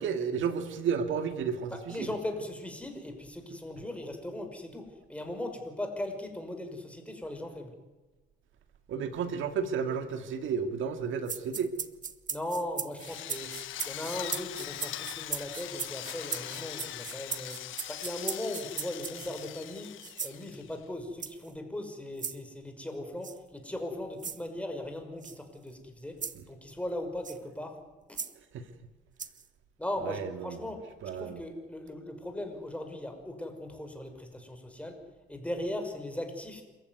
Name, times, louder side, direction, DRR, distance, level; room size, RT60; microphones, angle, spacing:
voice 1, 0.0-2.1 8.9-11.7 26.4-26.5 28.5-28.7 30.0-30.7 31.0-31.4, right 6 dB, 80° right, 8 dB, 2.1 m, -32 dB
voice 2, 1.7-7.7 12.3-13.6 13.9-27.8 28.1-28.2 29.8-35.0 35.3-36.6, left 1 dB, 5° left, 5 dB, 5.6 m, -38 dB
sound 1, 11.3-19.4 20.0-20.4 21.2-21.5 22.2-22.4 23.2-23.4 24.2-24.4 25.2-25.4 26.2-26.4 27.2-27.4 28.2-28.3 29.2-29.5, right 6 dB, 40° right, 1.5 m, -38 dB
Drill, 13.0-20.8, left 13 dB, 85° left, 1.4 m, -41 dB
27.5 x 15.0 x 9.6 m, 1.2 s
cardioid pair, 90°, 20 cm